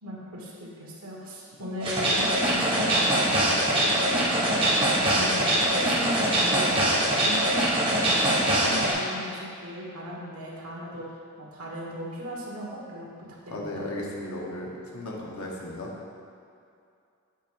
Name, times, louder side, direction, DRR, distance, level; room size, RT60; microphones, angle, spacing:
voice 1, 0.0-7.9 8.2-11.0 11.4-13.1 13.4-13.9, equal, 80° right, -4 dB, 1.5 m, -37 dB
sound 1, 1.8-8.9, right 1 dB, 25° right, 1.2 m, -23 dB
voice 2, 13.5-15.9, left 1 dB, 80° left, -2 dB, 1.1 m, -35 dB
7.3 x 3.5 x 5.1 m, 2.5 s
head